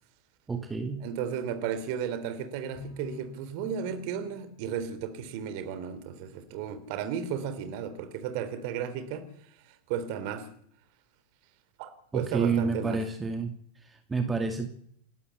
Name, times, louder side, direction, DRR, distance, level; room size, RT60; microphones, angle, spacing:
voice 1, 0.5-1.1 12.1-13.5 13.8-14.7, right 5 dB, 15° right, 6 dB, 2.2 m, -29 dB
voice 2, 1.0-9.3 9.7-10.5 11.8-13.0, right 8 dB, 45° right, 10 dB, 3.4 m, -34 dB
Bowed string instrument, 2.7-5.4, left 2 dB, 45° left, 5.9 m, -48 dB
28.0 x 12.5 x 8.3 m, 0.67 s
figure-of-eight pair, 90°, 0 cm